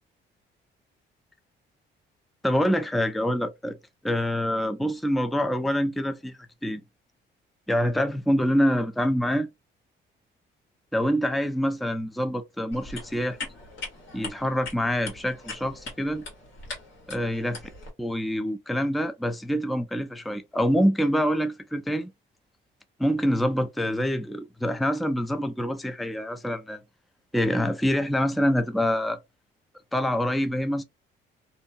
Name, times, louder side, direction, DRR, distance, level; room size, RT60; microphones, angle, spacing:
voice 1, 2.4-3.8 4.0-6.8 7.7-9.5 10.9-13.4 14.1-16.2 17.1-17.6 18.0-22.1 23.0-26.8 27.3-29.2 29.9-30.8, equal, ahead, 0.4 m, -26 dB
sound 1, 12.7-17.9, left 3 dB, 75° left, 1.5 m, -41 dB
2.7 x 2.3 x 2.7 m
cardioid pair, 90°, 20 cm